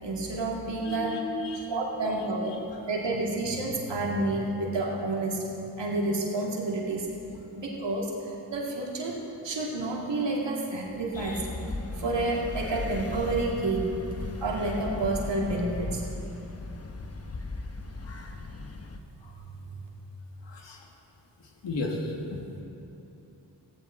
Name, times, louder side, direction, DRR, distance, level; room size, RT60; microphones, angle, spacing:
voice 1, 0.0-1.2 1.5-2.5 2.9-5.5 5.8-7.1 7.5-9.2 9.4-11.4 12.0-13.9 14.4-16.0 19.7-19.8, right 2 dB, 85° right, -2 dB, 2.3 m, -29 dB
voice 2, 0.8-1.7 2.4-2.6 18.0-18.1 20.5-20.8 21.6-22.6, left 2 dB, 90° left, 1 dB, 1.8 m, -34 dB
sound 1, 11.1-19.0, left 3 dB, 35° left, 1.0 m, -37 dB
16.0 x 15.0 x 3.8 m, 3.0 s
cardioid pair, 55°, 42 cm